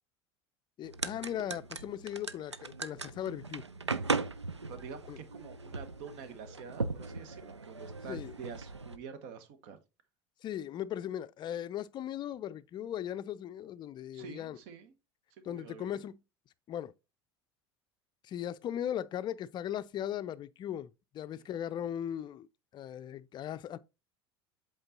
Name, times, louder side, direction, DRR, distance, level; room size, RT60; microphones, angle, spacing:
voice 1, 0.8-3.6 5.1-5.2 8.1-8.3 10.4-14.6 15.5-16.1 16.7-16.9 18.2-22.5 22.7-23.8, left 10 dB, 30° left, 0.4 m, -38 dB
sound 1, 0.8-9.0, right 3 dB, 90° right, 0.4 m, -38 dB
voice 2, 4.7-9.8 14.1-14.9 15.4-16.0 21.3-21.5, right 6 dB, 55° right, 1.1 m, -47 dB
7.9 x 3.8 x 3.9 m
figure-of-eight pair, 70°, 14 cm